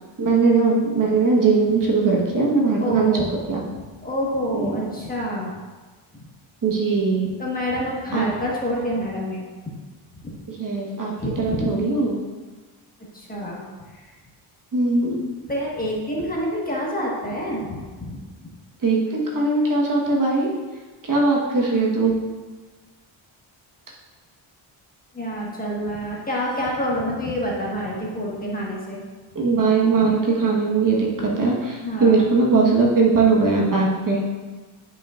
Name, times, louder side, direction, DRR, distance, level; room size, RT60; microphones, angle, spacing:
voice 1, 0.2-3.1 3.5-3.6 4.6-4.7 6.6-7.3 8.1-8.2 10.6-11.1 11.4-12.2 14.7-15.2 18.8-20.5 21.0-22.1 29.3-34.2, right 4 dB, 40° right, -3 dB, 1.3 m, -20 dB
voice 2, 2.8-3.3 3.7-5.5 6.1-6.2 7.4-9.7 10.2-10.3 11.2-11.7 13.1-13.6 13.9-14.0 15.5-18.2 25.1-29.0 31.8-32.2, equal, 20° left, -4 dB, 1.4 m, -27 dB
9.7 x 5.7 x 2.5 m, 1.3 s
cardioid pair, 125°, 48 cm